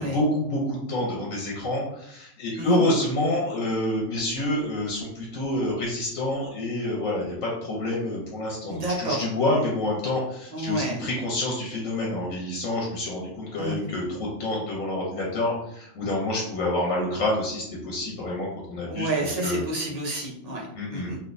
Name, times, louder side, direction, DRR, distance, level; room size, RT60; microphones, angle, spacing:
voice 1, 0.0-19.6 20.7-21.1, left 1 dB, 80° left, -3 dB, 1.2 m, -28 dB
voice 2, 8.7-9.3 10.5-11.0 13.6-13.8 18.9-21.2, right 2 dB, 40° right, -3 dB, 0.6 m, -29 dB
3.4 x 2.5 x 2.5 m, 0.74 s
omnidirectional pair, 1.3 m